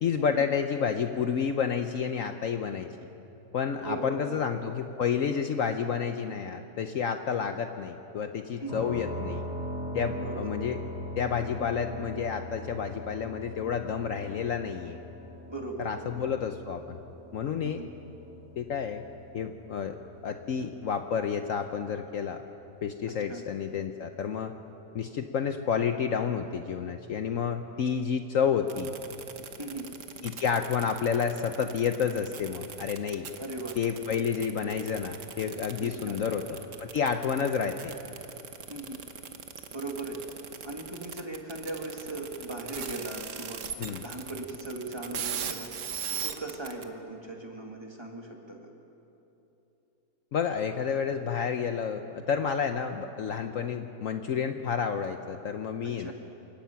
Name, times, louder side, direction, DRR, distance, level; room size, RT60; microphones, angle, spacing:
voice 1, 0.0-2.9 3.5-9.4 9.9-10.8 11.2-15.0 15.8-17.0 17.3-17.8 18.6-19.0 19.3-20.0 20.2-22.4 22.8-24.5 24.9-28.9 30.2-33.3 33.8-37.9 43.8-44.0 50.3-56.1, left 7 dB, 60° left, 7 dB, 1.0 m, -30 dB
voice 2, 3.8-4.4 8.6-8.9 10.2-10.5 15.5-16.2 17.6-17.9 23.1-23.4 29.6-29.9 33.4-33.8 35.8-36.4 37.4-37.5 38.7-39.0 39.7-40.2 40.6-43.6 44.0-45.7 46.2-48.7 55.8-56.1, right 2 dB, 15° right, 1 dB, 1.9 m, -38 dB
sound 1, 8.7-22.4, equal, 80° left, 5.3 m, -41 dB
sound 2, 28.7-46.8, right 7 dB, 55° right, 1.3 m, -39 dB
28.0 x 16.5 x 5.8 m, 3.0 s
omnidirectional pair, 1.7 m